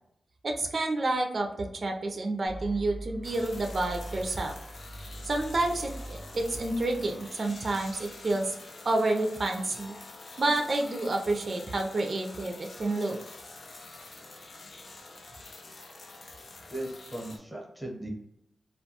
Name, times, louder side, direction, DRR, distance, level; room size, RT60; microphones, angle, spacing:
voice 1, 0.4-4.5 5.2-8.5 8.8-9.9 10.4-13.2, right 2 dB, 50° right, 2 dB, 0.4 m, -29 dB
sound 1, 2.5-8.4, right 1 dB, 45° left, 0.8 m, -43 dB
sound 2, 3.2-17.4, left 2 dB, 65° left, 0.4 m, -47 dB
voice 2, 16.7-18.1, right 1 dB, 5° right, -1 dB, 0.8 m, -38 dB
2.3 x 2.2 x 2.8 m, 0.79 s
wide cardioid pair, 90°, 0 cm